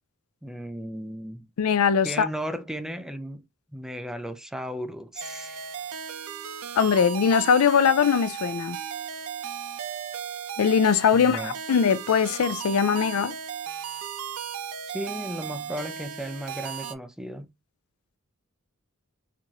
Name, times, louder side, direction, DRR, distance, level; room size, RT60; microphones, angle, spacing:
voice 1, 0.4-1.5 2.0-3.4 3.7-5.7 11.1-11.5 14.9-17.5, equal, 5° right, 0.4 m, -35 dB
voice 2, 1.6-2.3 6.8-8.8 10.6-13.3, left 6 dB, 80° left, 0.4 m, -21 dB
sound 1, 5.2-16.9, right 8 dB, 90° right, 0.5 m, -36 dB
4.5 x 2.5 x 2.8 m
head